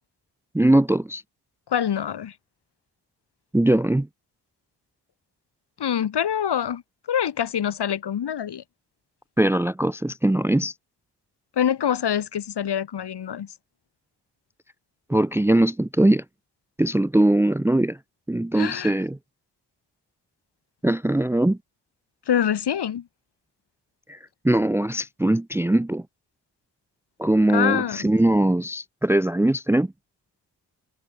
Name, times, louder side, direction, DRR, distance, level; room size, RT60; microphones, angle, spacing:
voice 1, 0.5-1.2 3.5-4.1 9.4-10.7 15.1-16.2 16.8-18.0 18.3-19.2 20.8-21.6 24.1-24.2 24.4-26.0 27.2-29.9, right 1 dB, 5° right, 0.7 m, -21 dB
voice 2, 1.7-2.3 5.8-6.8 7.1-8.6 11.6-13.5 18.5-18.9 22.3-23.1 27.5-28.1, left 9 dB, 60° left, 3.4 m, -25 dB
hypercardioid pair, 45°, 46 cm